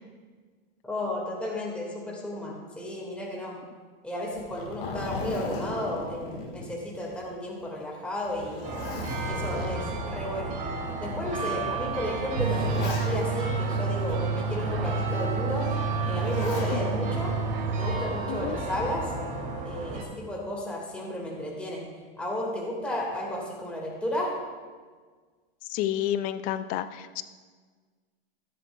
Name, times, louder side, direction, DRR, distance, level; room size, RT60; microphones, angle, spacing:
voice 1, 0.8-3.6 4.0-8.6 9.2-10.5 11.0-15.7 16.0-17.3 17.7-19.1 19.6-21.8 22.2-24.3, left 1 dB, 5° left, -3 dB, 1.9 m, -33 dB
Zipper (clothing), 4.3-7.2 7.6-7.7 8.3-10.1 10.9-11.0 11.9-13.5 15.9-16.8 18.2-18.7, left 3 dB, 65° left, 2.0 m, -36 dB
sound 1, 8.6-20.0, right 3 dB, 25° right, 2.1 m, -34 dB
sound 2, 12.4-18.5, right 4 dB, 75° right, 0.6 m, -30 dB
voice 2, 25.7-27.2, left 11 dB, 30° left, 12 dB, 0.4 m, -30 dB
14.5 x 10.0 x 2.3 m, 1.5 s
supercardioid pair, 135°, 30 cm